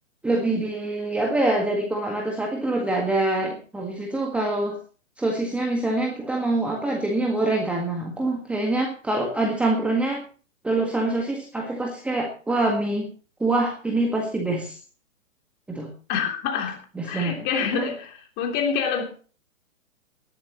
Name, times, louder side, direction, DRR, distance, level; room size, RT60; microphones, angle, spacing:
voice 1, 0.2-4.8 5.2-10.3 10.6-13.1 13.4-14.8 15.7-15.9 17.0-17.4 17.7-17.9, right 2 dB, 5° right, 0 dB, 1.7 m, -25 dB
voice 2, 16.1-16.8 17.0-19.0, left 6 dB, 25° left, 3 dB, 3.2 m, -26 dB
18.5 x 12.0 x 3.1 m, 0.39 s
figure-of-eight pair, 130°, 41 cm